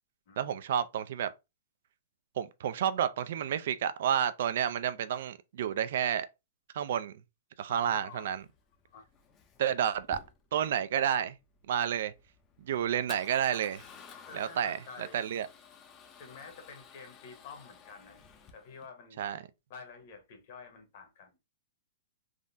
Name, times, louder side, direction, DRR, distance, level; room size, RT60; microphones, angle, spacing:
voice 1, 0.4-1.3 2.4-6.3 6.7-7.1 7.6-8.4 9.6-10.2 10.5-11.3 11.7-12.1 12.6-13.8 14.3-15.5 19.2-19.5, right 9 dB, 60° right, 0.3 m, -30 dB
voice 2, 7.7-8.3 8.9-9.0 14.3-15.2 16.2-18.2 18.5-19.2 19.7-21.3, left 5 dB, 50° left, 1.0 m, -49 dB
Male speech man speaking / Car / Engine starting, 7.8-18.9, left 6 dB, 20° left, 0.5 m, -54 dB
3.6 x 2.1 x 2.5 m
hypercardioid pair, 150°, 0 cm